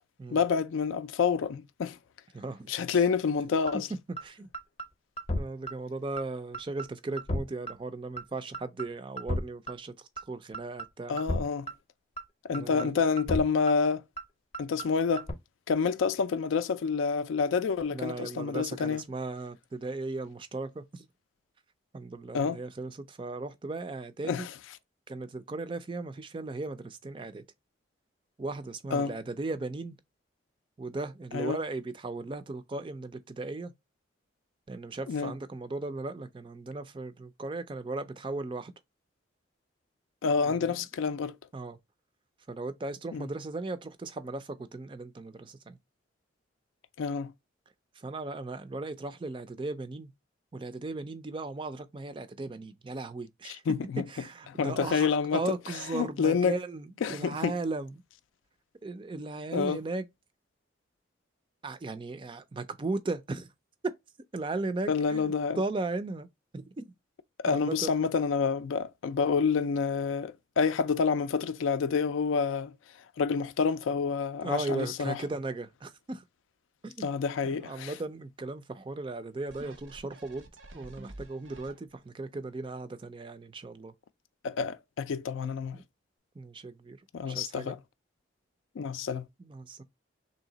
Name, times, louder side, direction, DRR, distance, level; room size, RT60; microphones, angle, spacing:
voice 1, 0.3-2.0 2.7-3.9 11.1-11.7 12.5-14.0 14.6-15.3 15.7-19.0 22.3-22.6 24.3-24.5 28.9-29.1 31.3-31.6 35.1-35.3 40.2-41.3 43.1-43.3 47.0-47.3 53.7-54.1 54.6-55.4 55.9-56.5 57.0-57.5 59.5-59.8 64.9-65.6 67.4-72.7 73.2-75.2 77.0-77.9 84.4-85.8 87.1-87.8 88.8-89.3, left 5 dB, 85° left, 0.4 m, -28 dB
voice 2, 2.3-3.0 4.2-4.5 5.4-11.2 12.5-12.9 17.9-21.1 21.9-24.5 25.1-27.4 28.4-30.0 30.8-33.7 34.7-38.7 40.4-40.8 41.5-41.8 42.5-45.8 48.0-50.1 50.5-53.6 54.1-58.0 58.8-60.1 61.6-63.5 63.8-63.9 64.3-66.3 66.5-66.9 67.5-68.0 74.4-76.2 76.8-77.1 77.4-80.4 80.7-83.9 85.7-85.8 86.4-87.0 87.3-87.8 89.4-89.8, right 3 dB, 25° right, 0.3 m, -37 dB
sound 1, 3.7-3.8 4.2-4.3 4.5-4.9 5.2-5.4 5.7-5.8 6.2-6.3 6.5-6.9 7.2-7.4 7.7-7.8 8.2-8.3 8.5-8.9 9.2-9.4 9.7-9.8 10.2-10.3 10.5-10.9 11.2-11.4 11.7-11.8 12.2-12.3 12.5-12.9 13.2-13.4 13.7-13.8 14.2-14.3 14.5-14.9 15.2-15.3, equal, 30° left, 0.6 m, -32 dB
sound 2, 79.5-82.2 82.7-82.8, right 1 dB, 80° right, 0.9 m, -49 dB
3.2 x 2.8 x 3.9 m
head